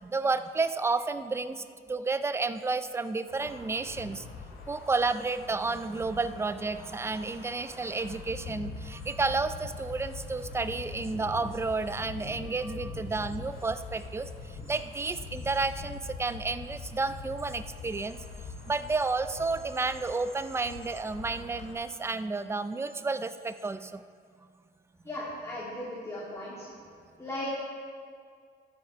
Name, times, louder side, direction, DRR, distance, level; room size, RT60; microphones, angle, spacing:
voice 1, 0.0-4.2 4.7-14.3 14.7-18.2 18.7-24.0, right 3 dB, 15° right, 12 dB, 0.4 m, -31 dB
Wind, 3.3-21.7, left 4 dB, 85° left, 3.1 m, -43 dB
voice 2, 25.0-26.6 27.2-27.6, left 1 dB, 15° left, -8 dB, 2.8 m, -36 dB
13.0 x 8.0 x 4.8 m, 2.2 s
cardioid pair, 90°, 20 cm